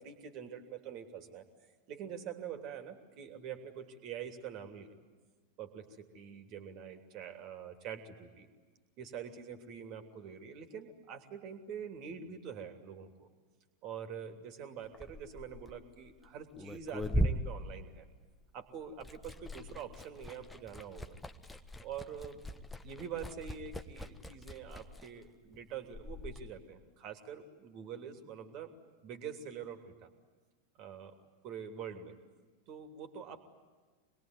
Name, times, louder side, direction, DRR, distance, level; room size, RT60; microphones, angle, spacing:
voice 1, 0.0-1.5 1.9-4.9 5.6-8.5 9.0-13.3 13.8-18.0 18.5-21.1 21.8-22.4 22.8-28.7 29.0-30.1 30.7-31.2 31.4-32.2 32.7-33.4, right 7 dB, 40° right, 7 dB, 3.0 m, -45 dB
Liquid, 14.8-18.5 18.8-26.4, equal, 5° left, 1.3 m, -39 dB
26.5 x 21.5 x 9.4 m, 1.4 s
figure-of-eight pair, 90°, 0 cm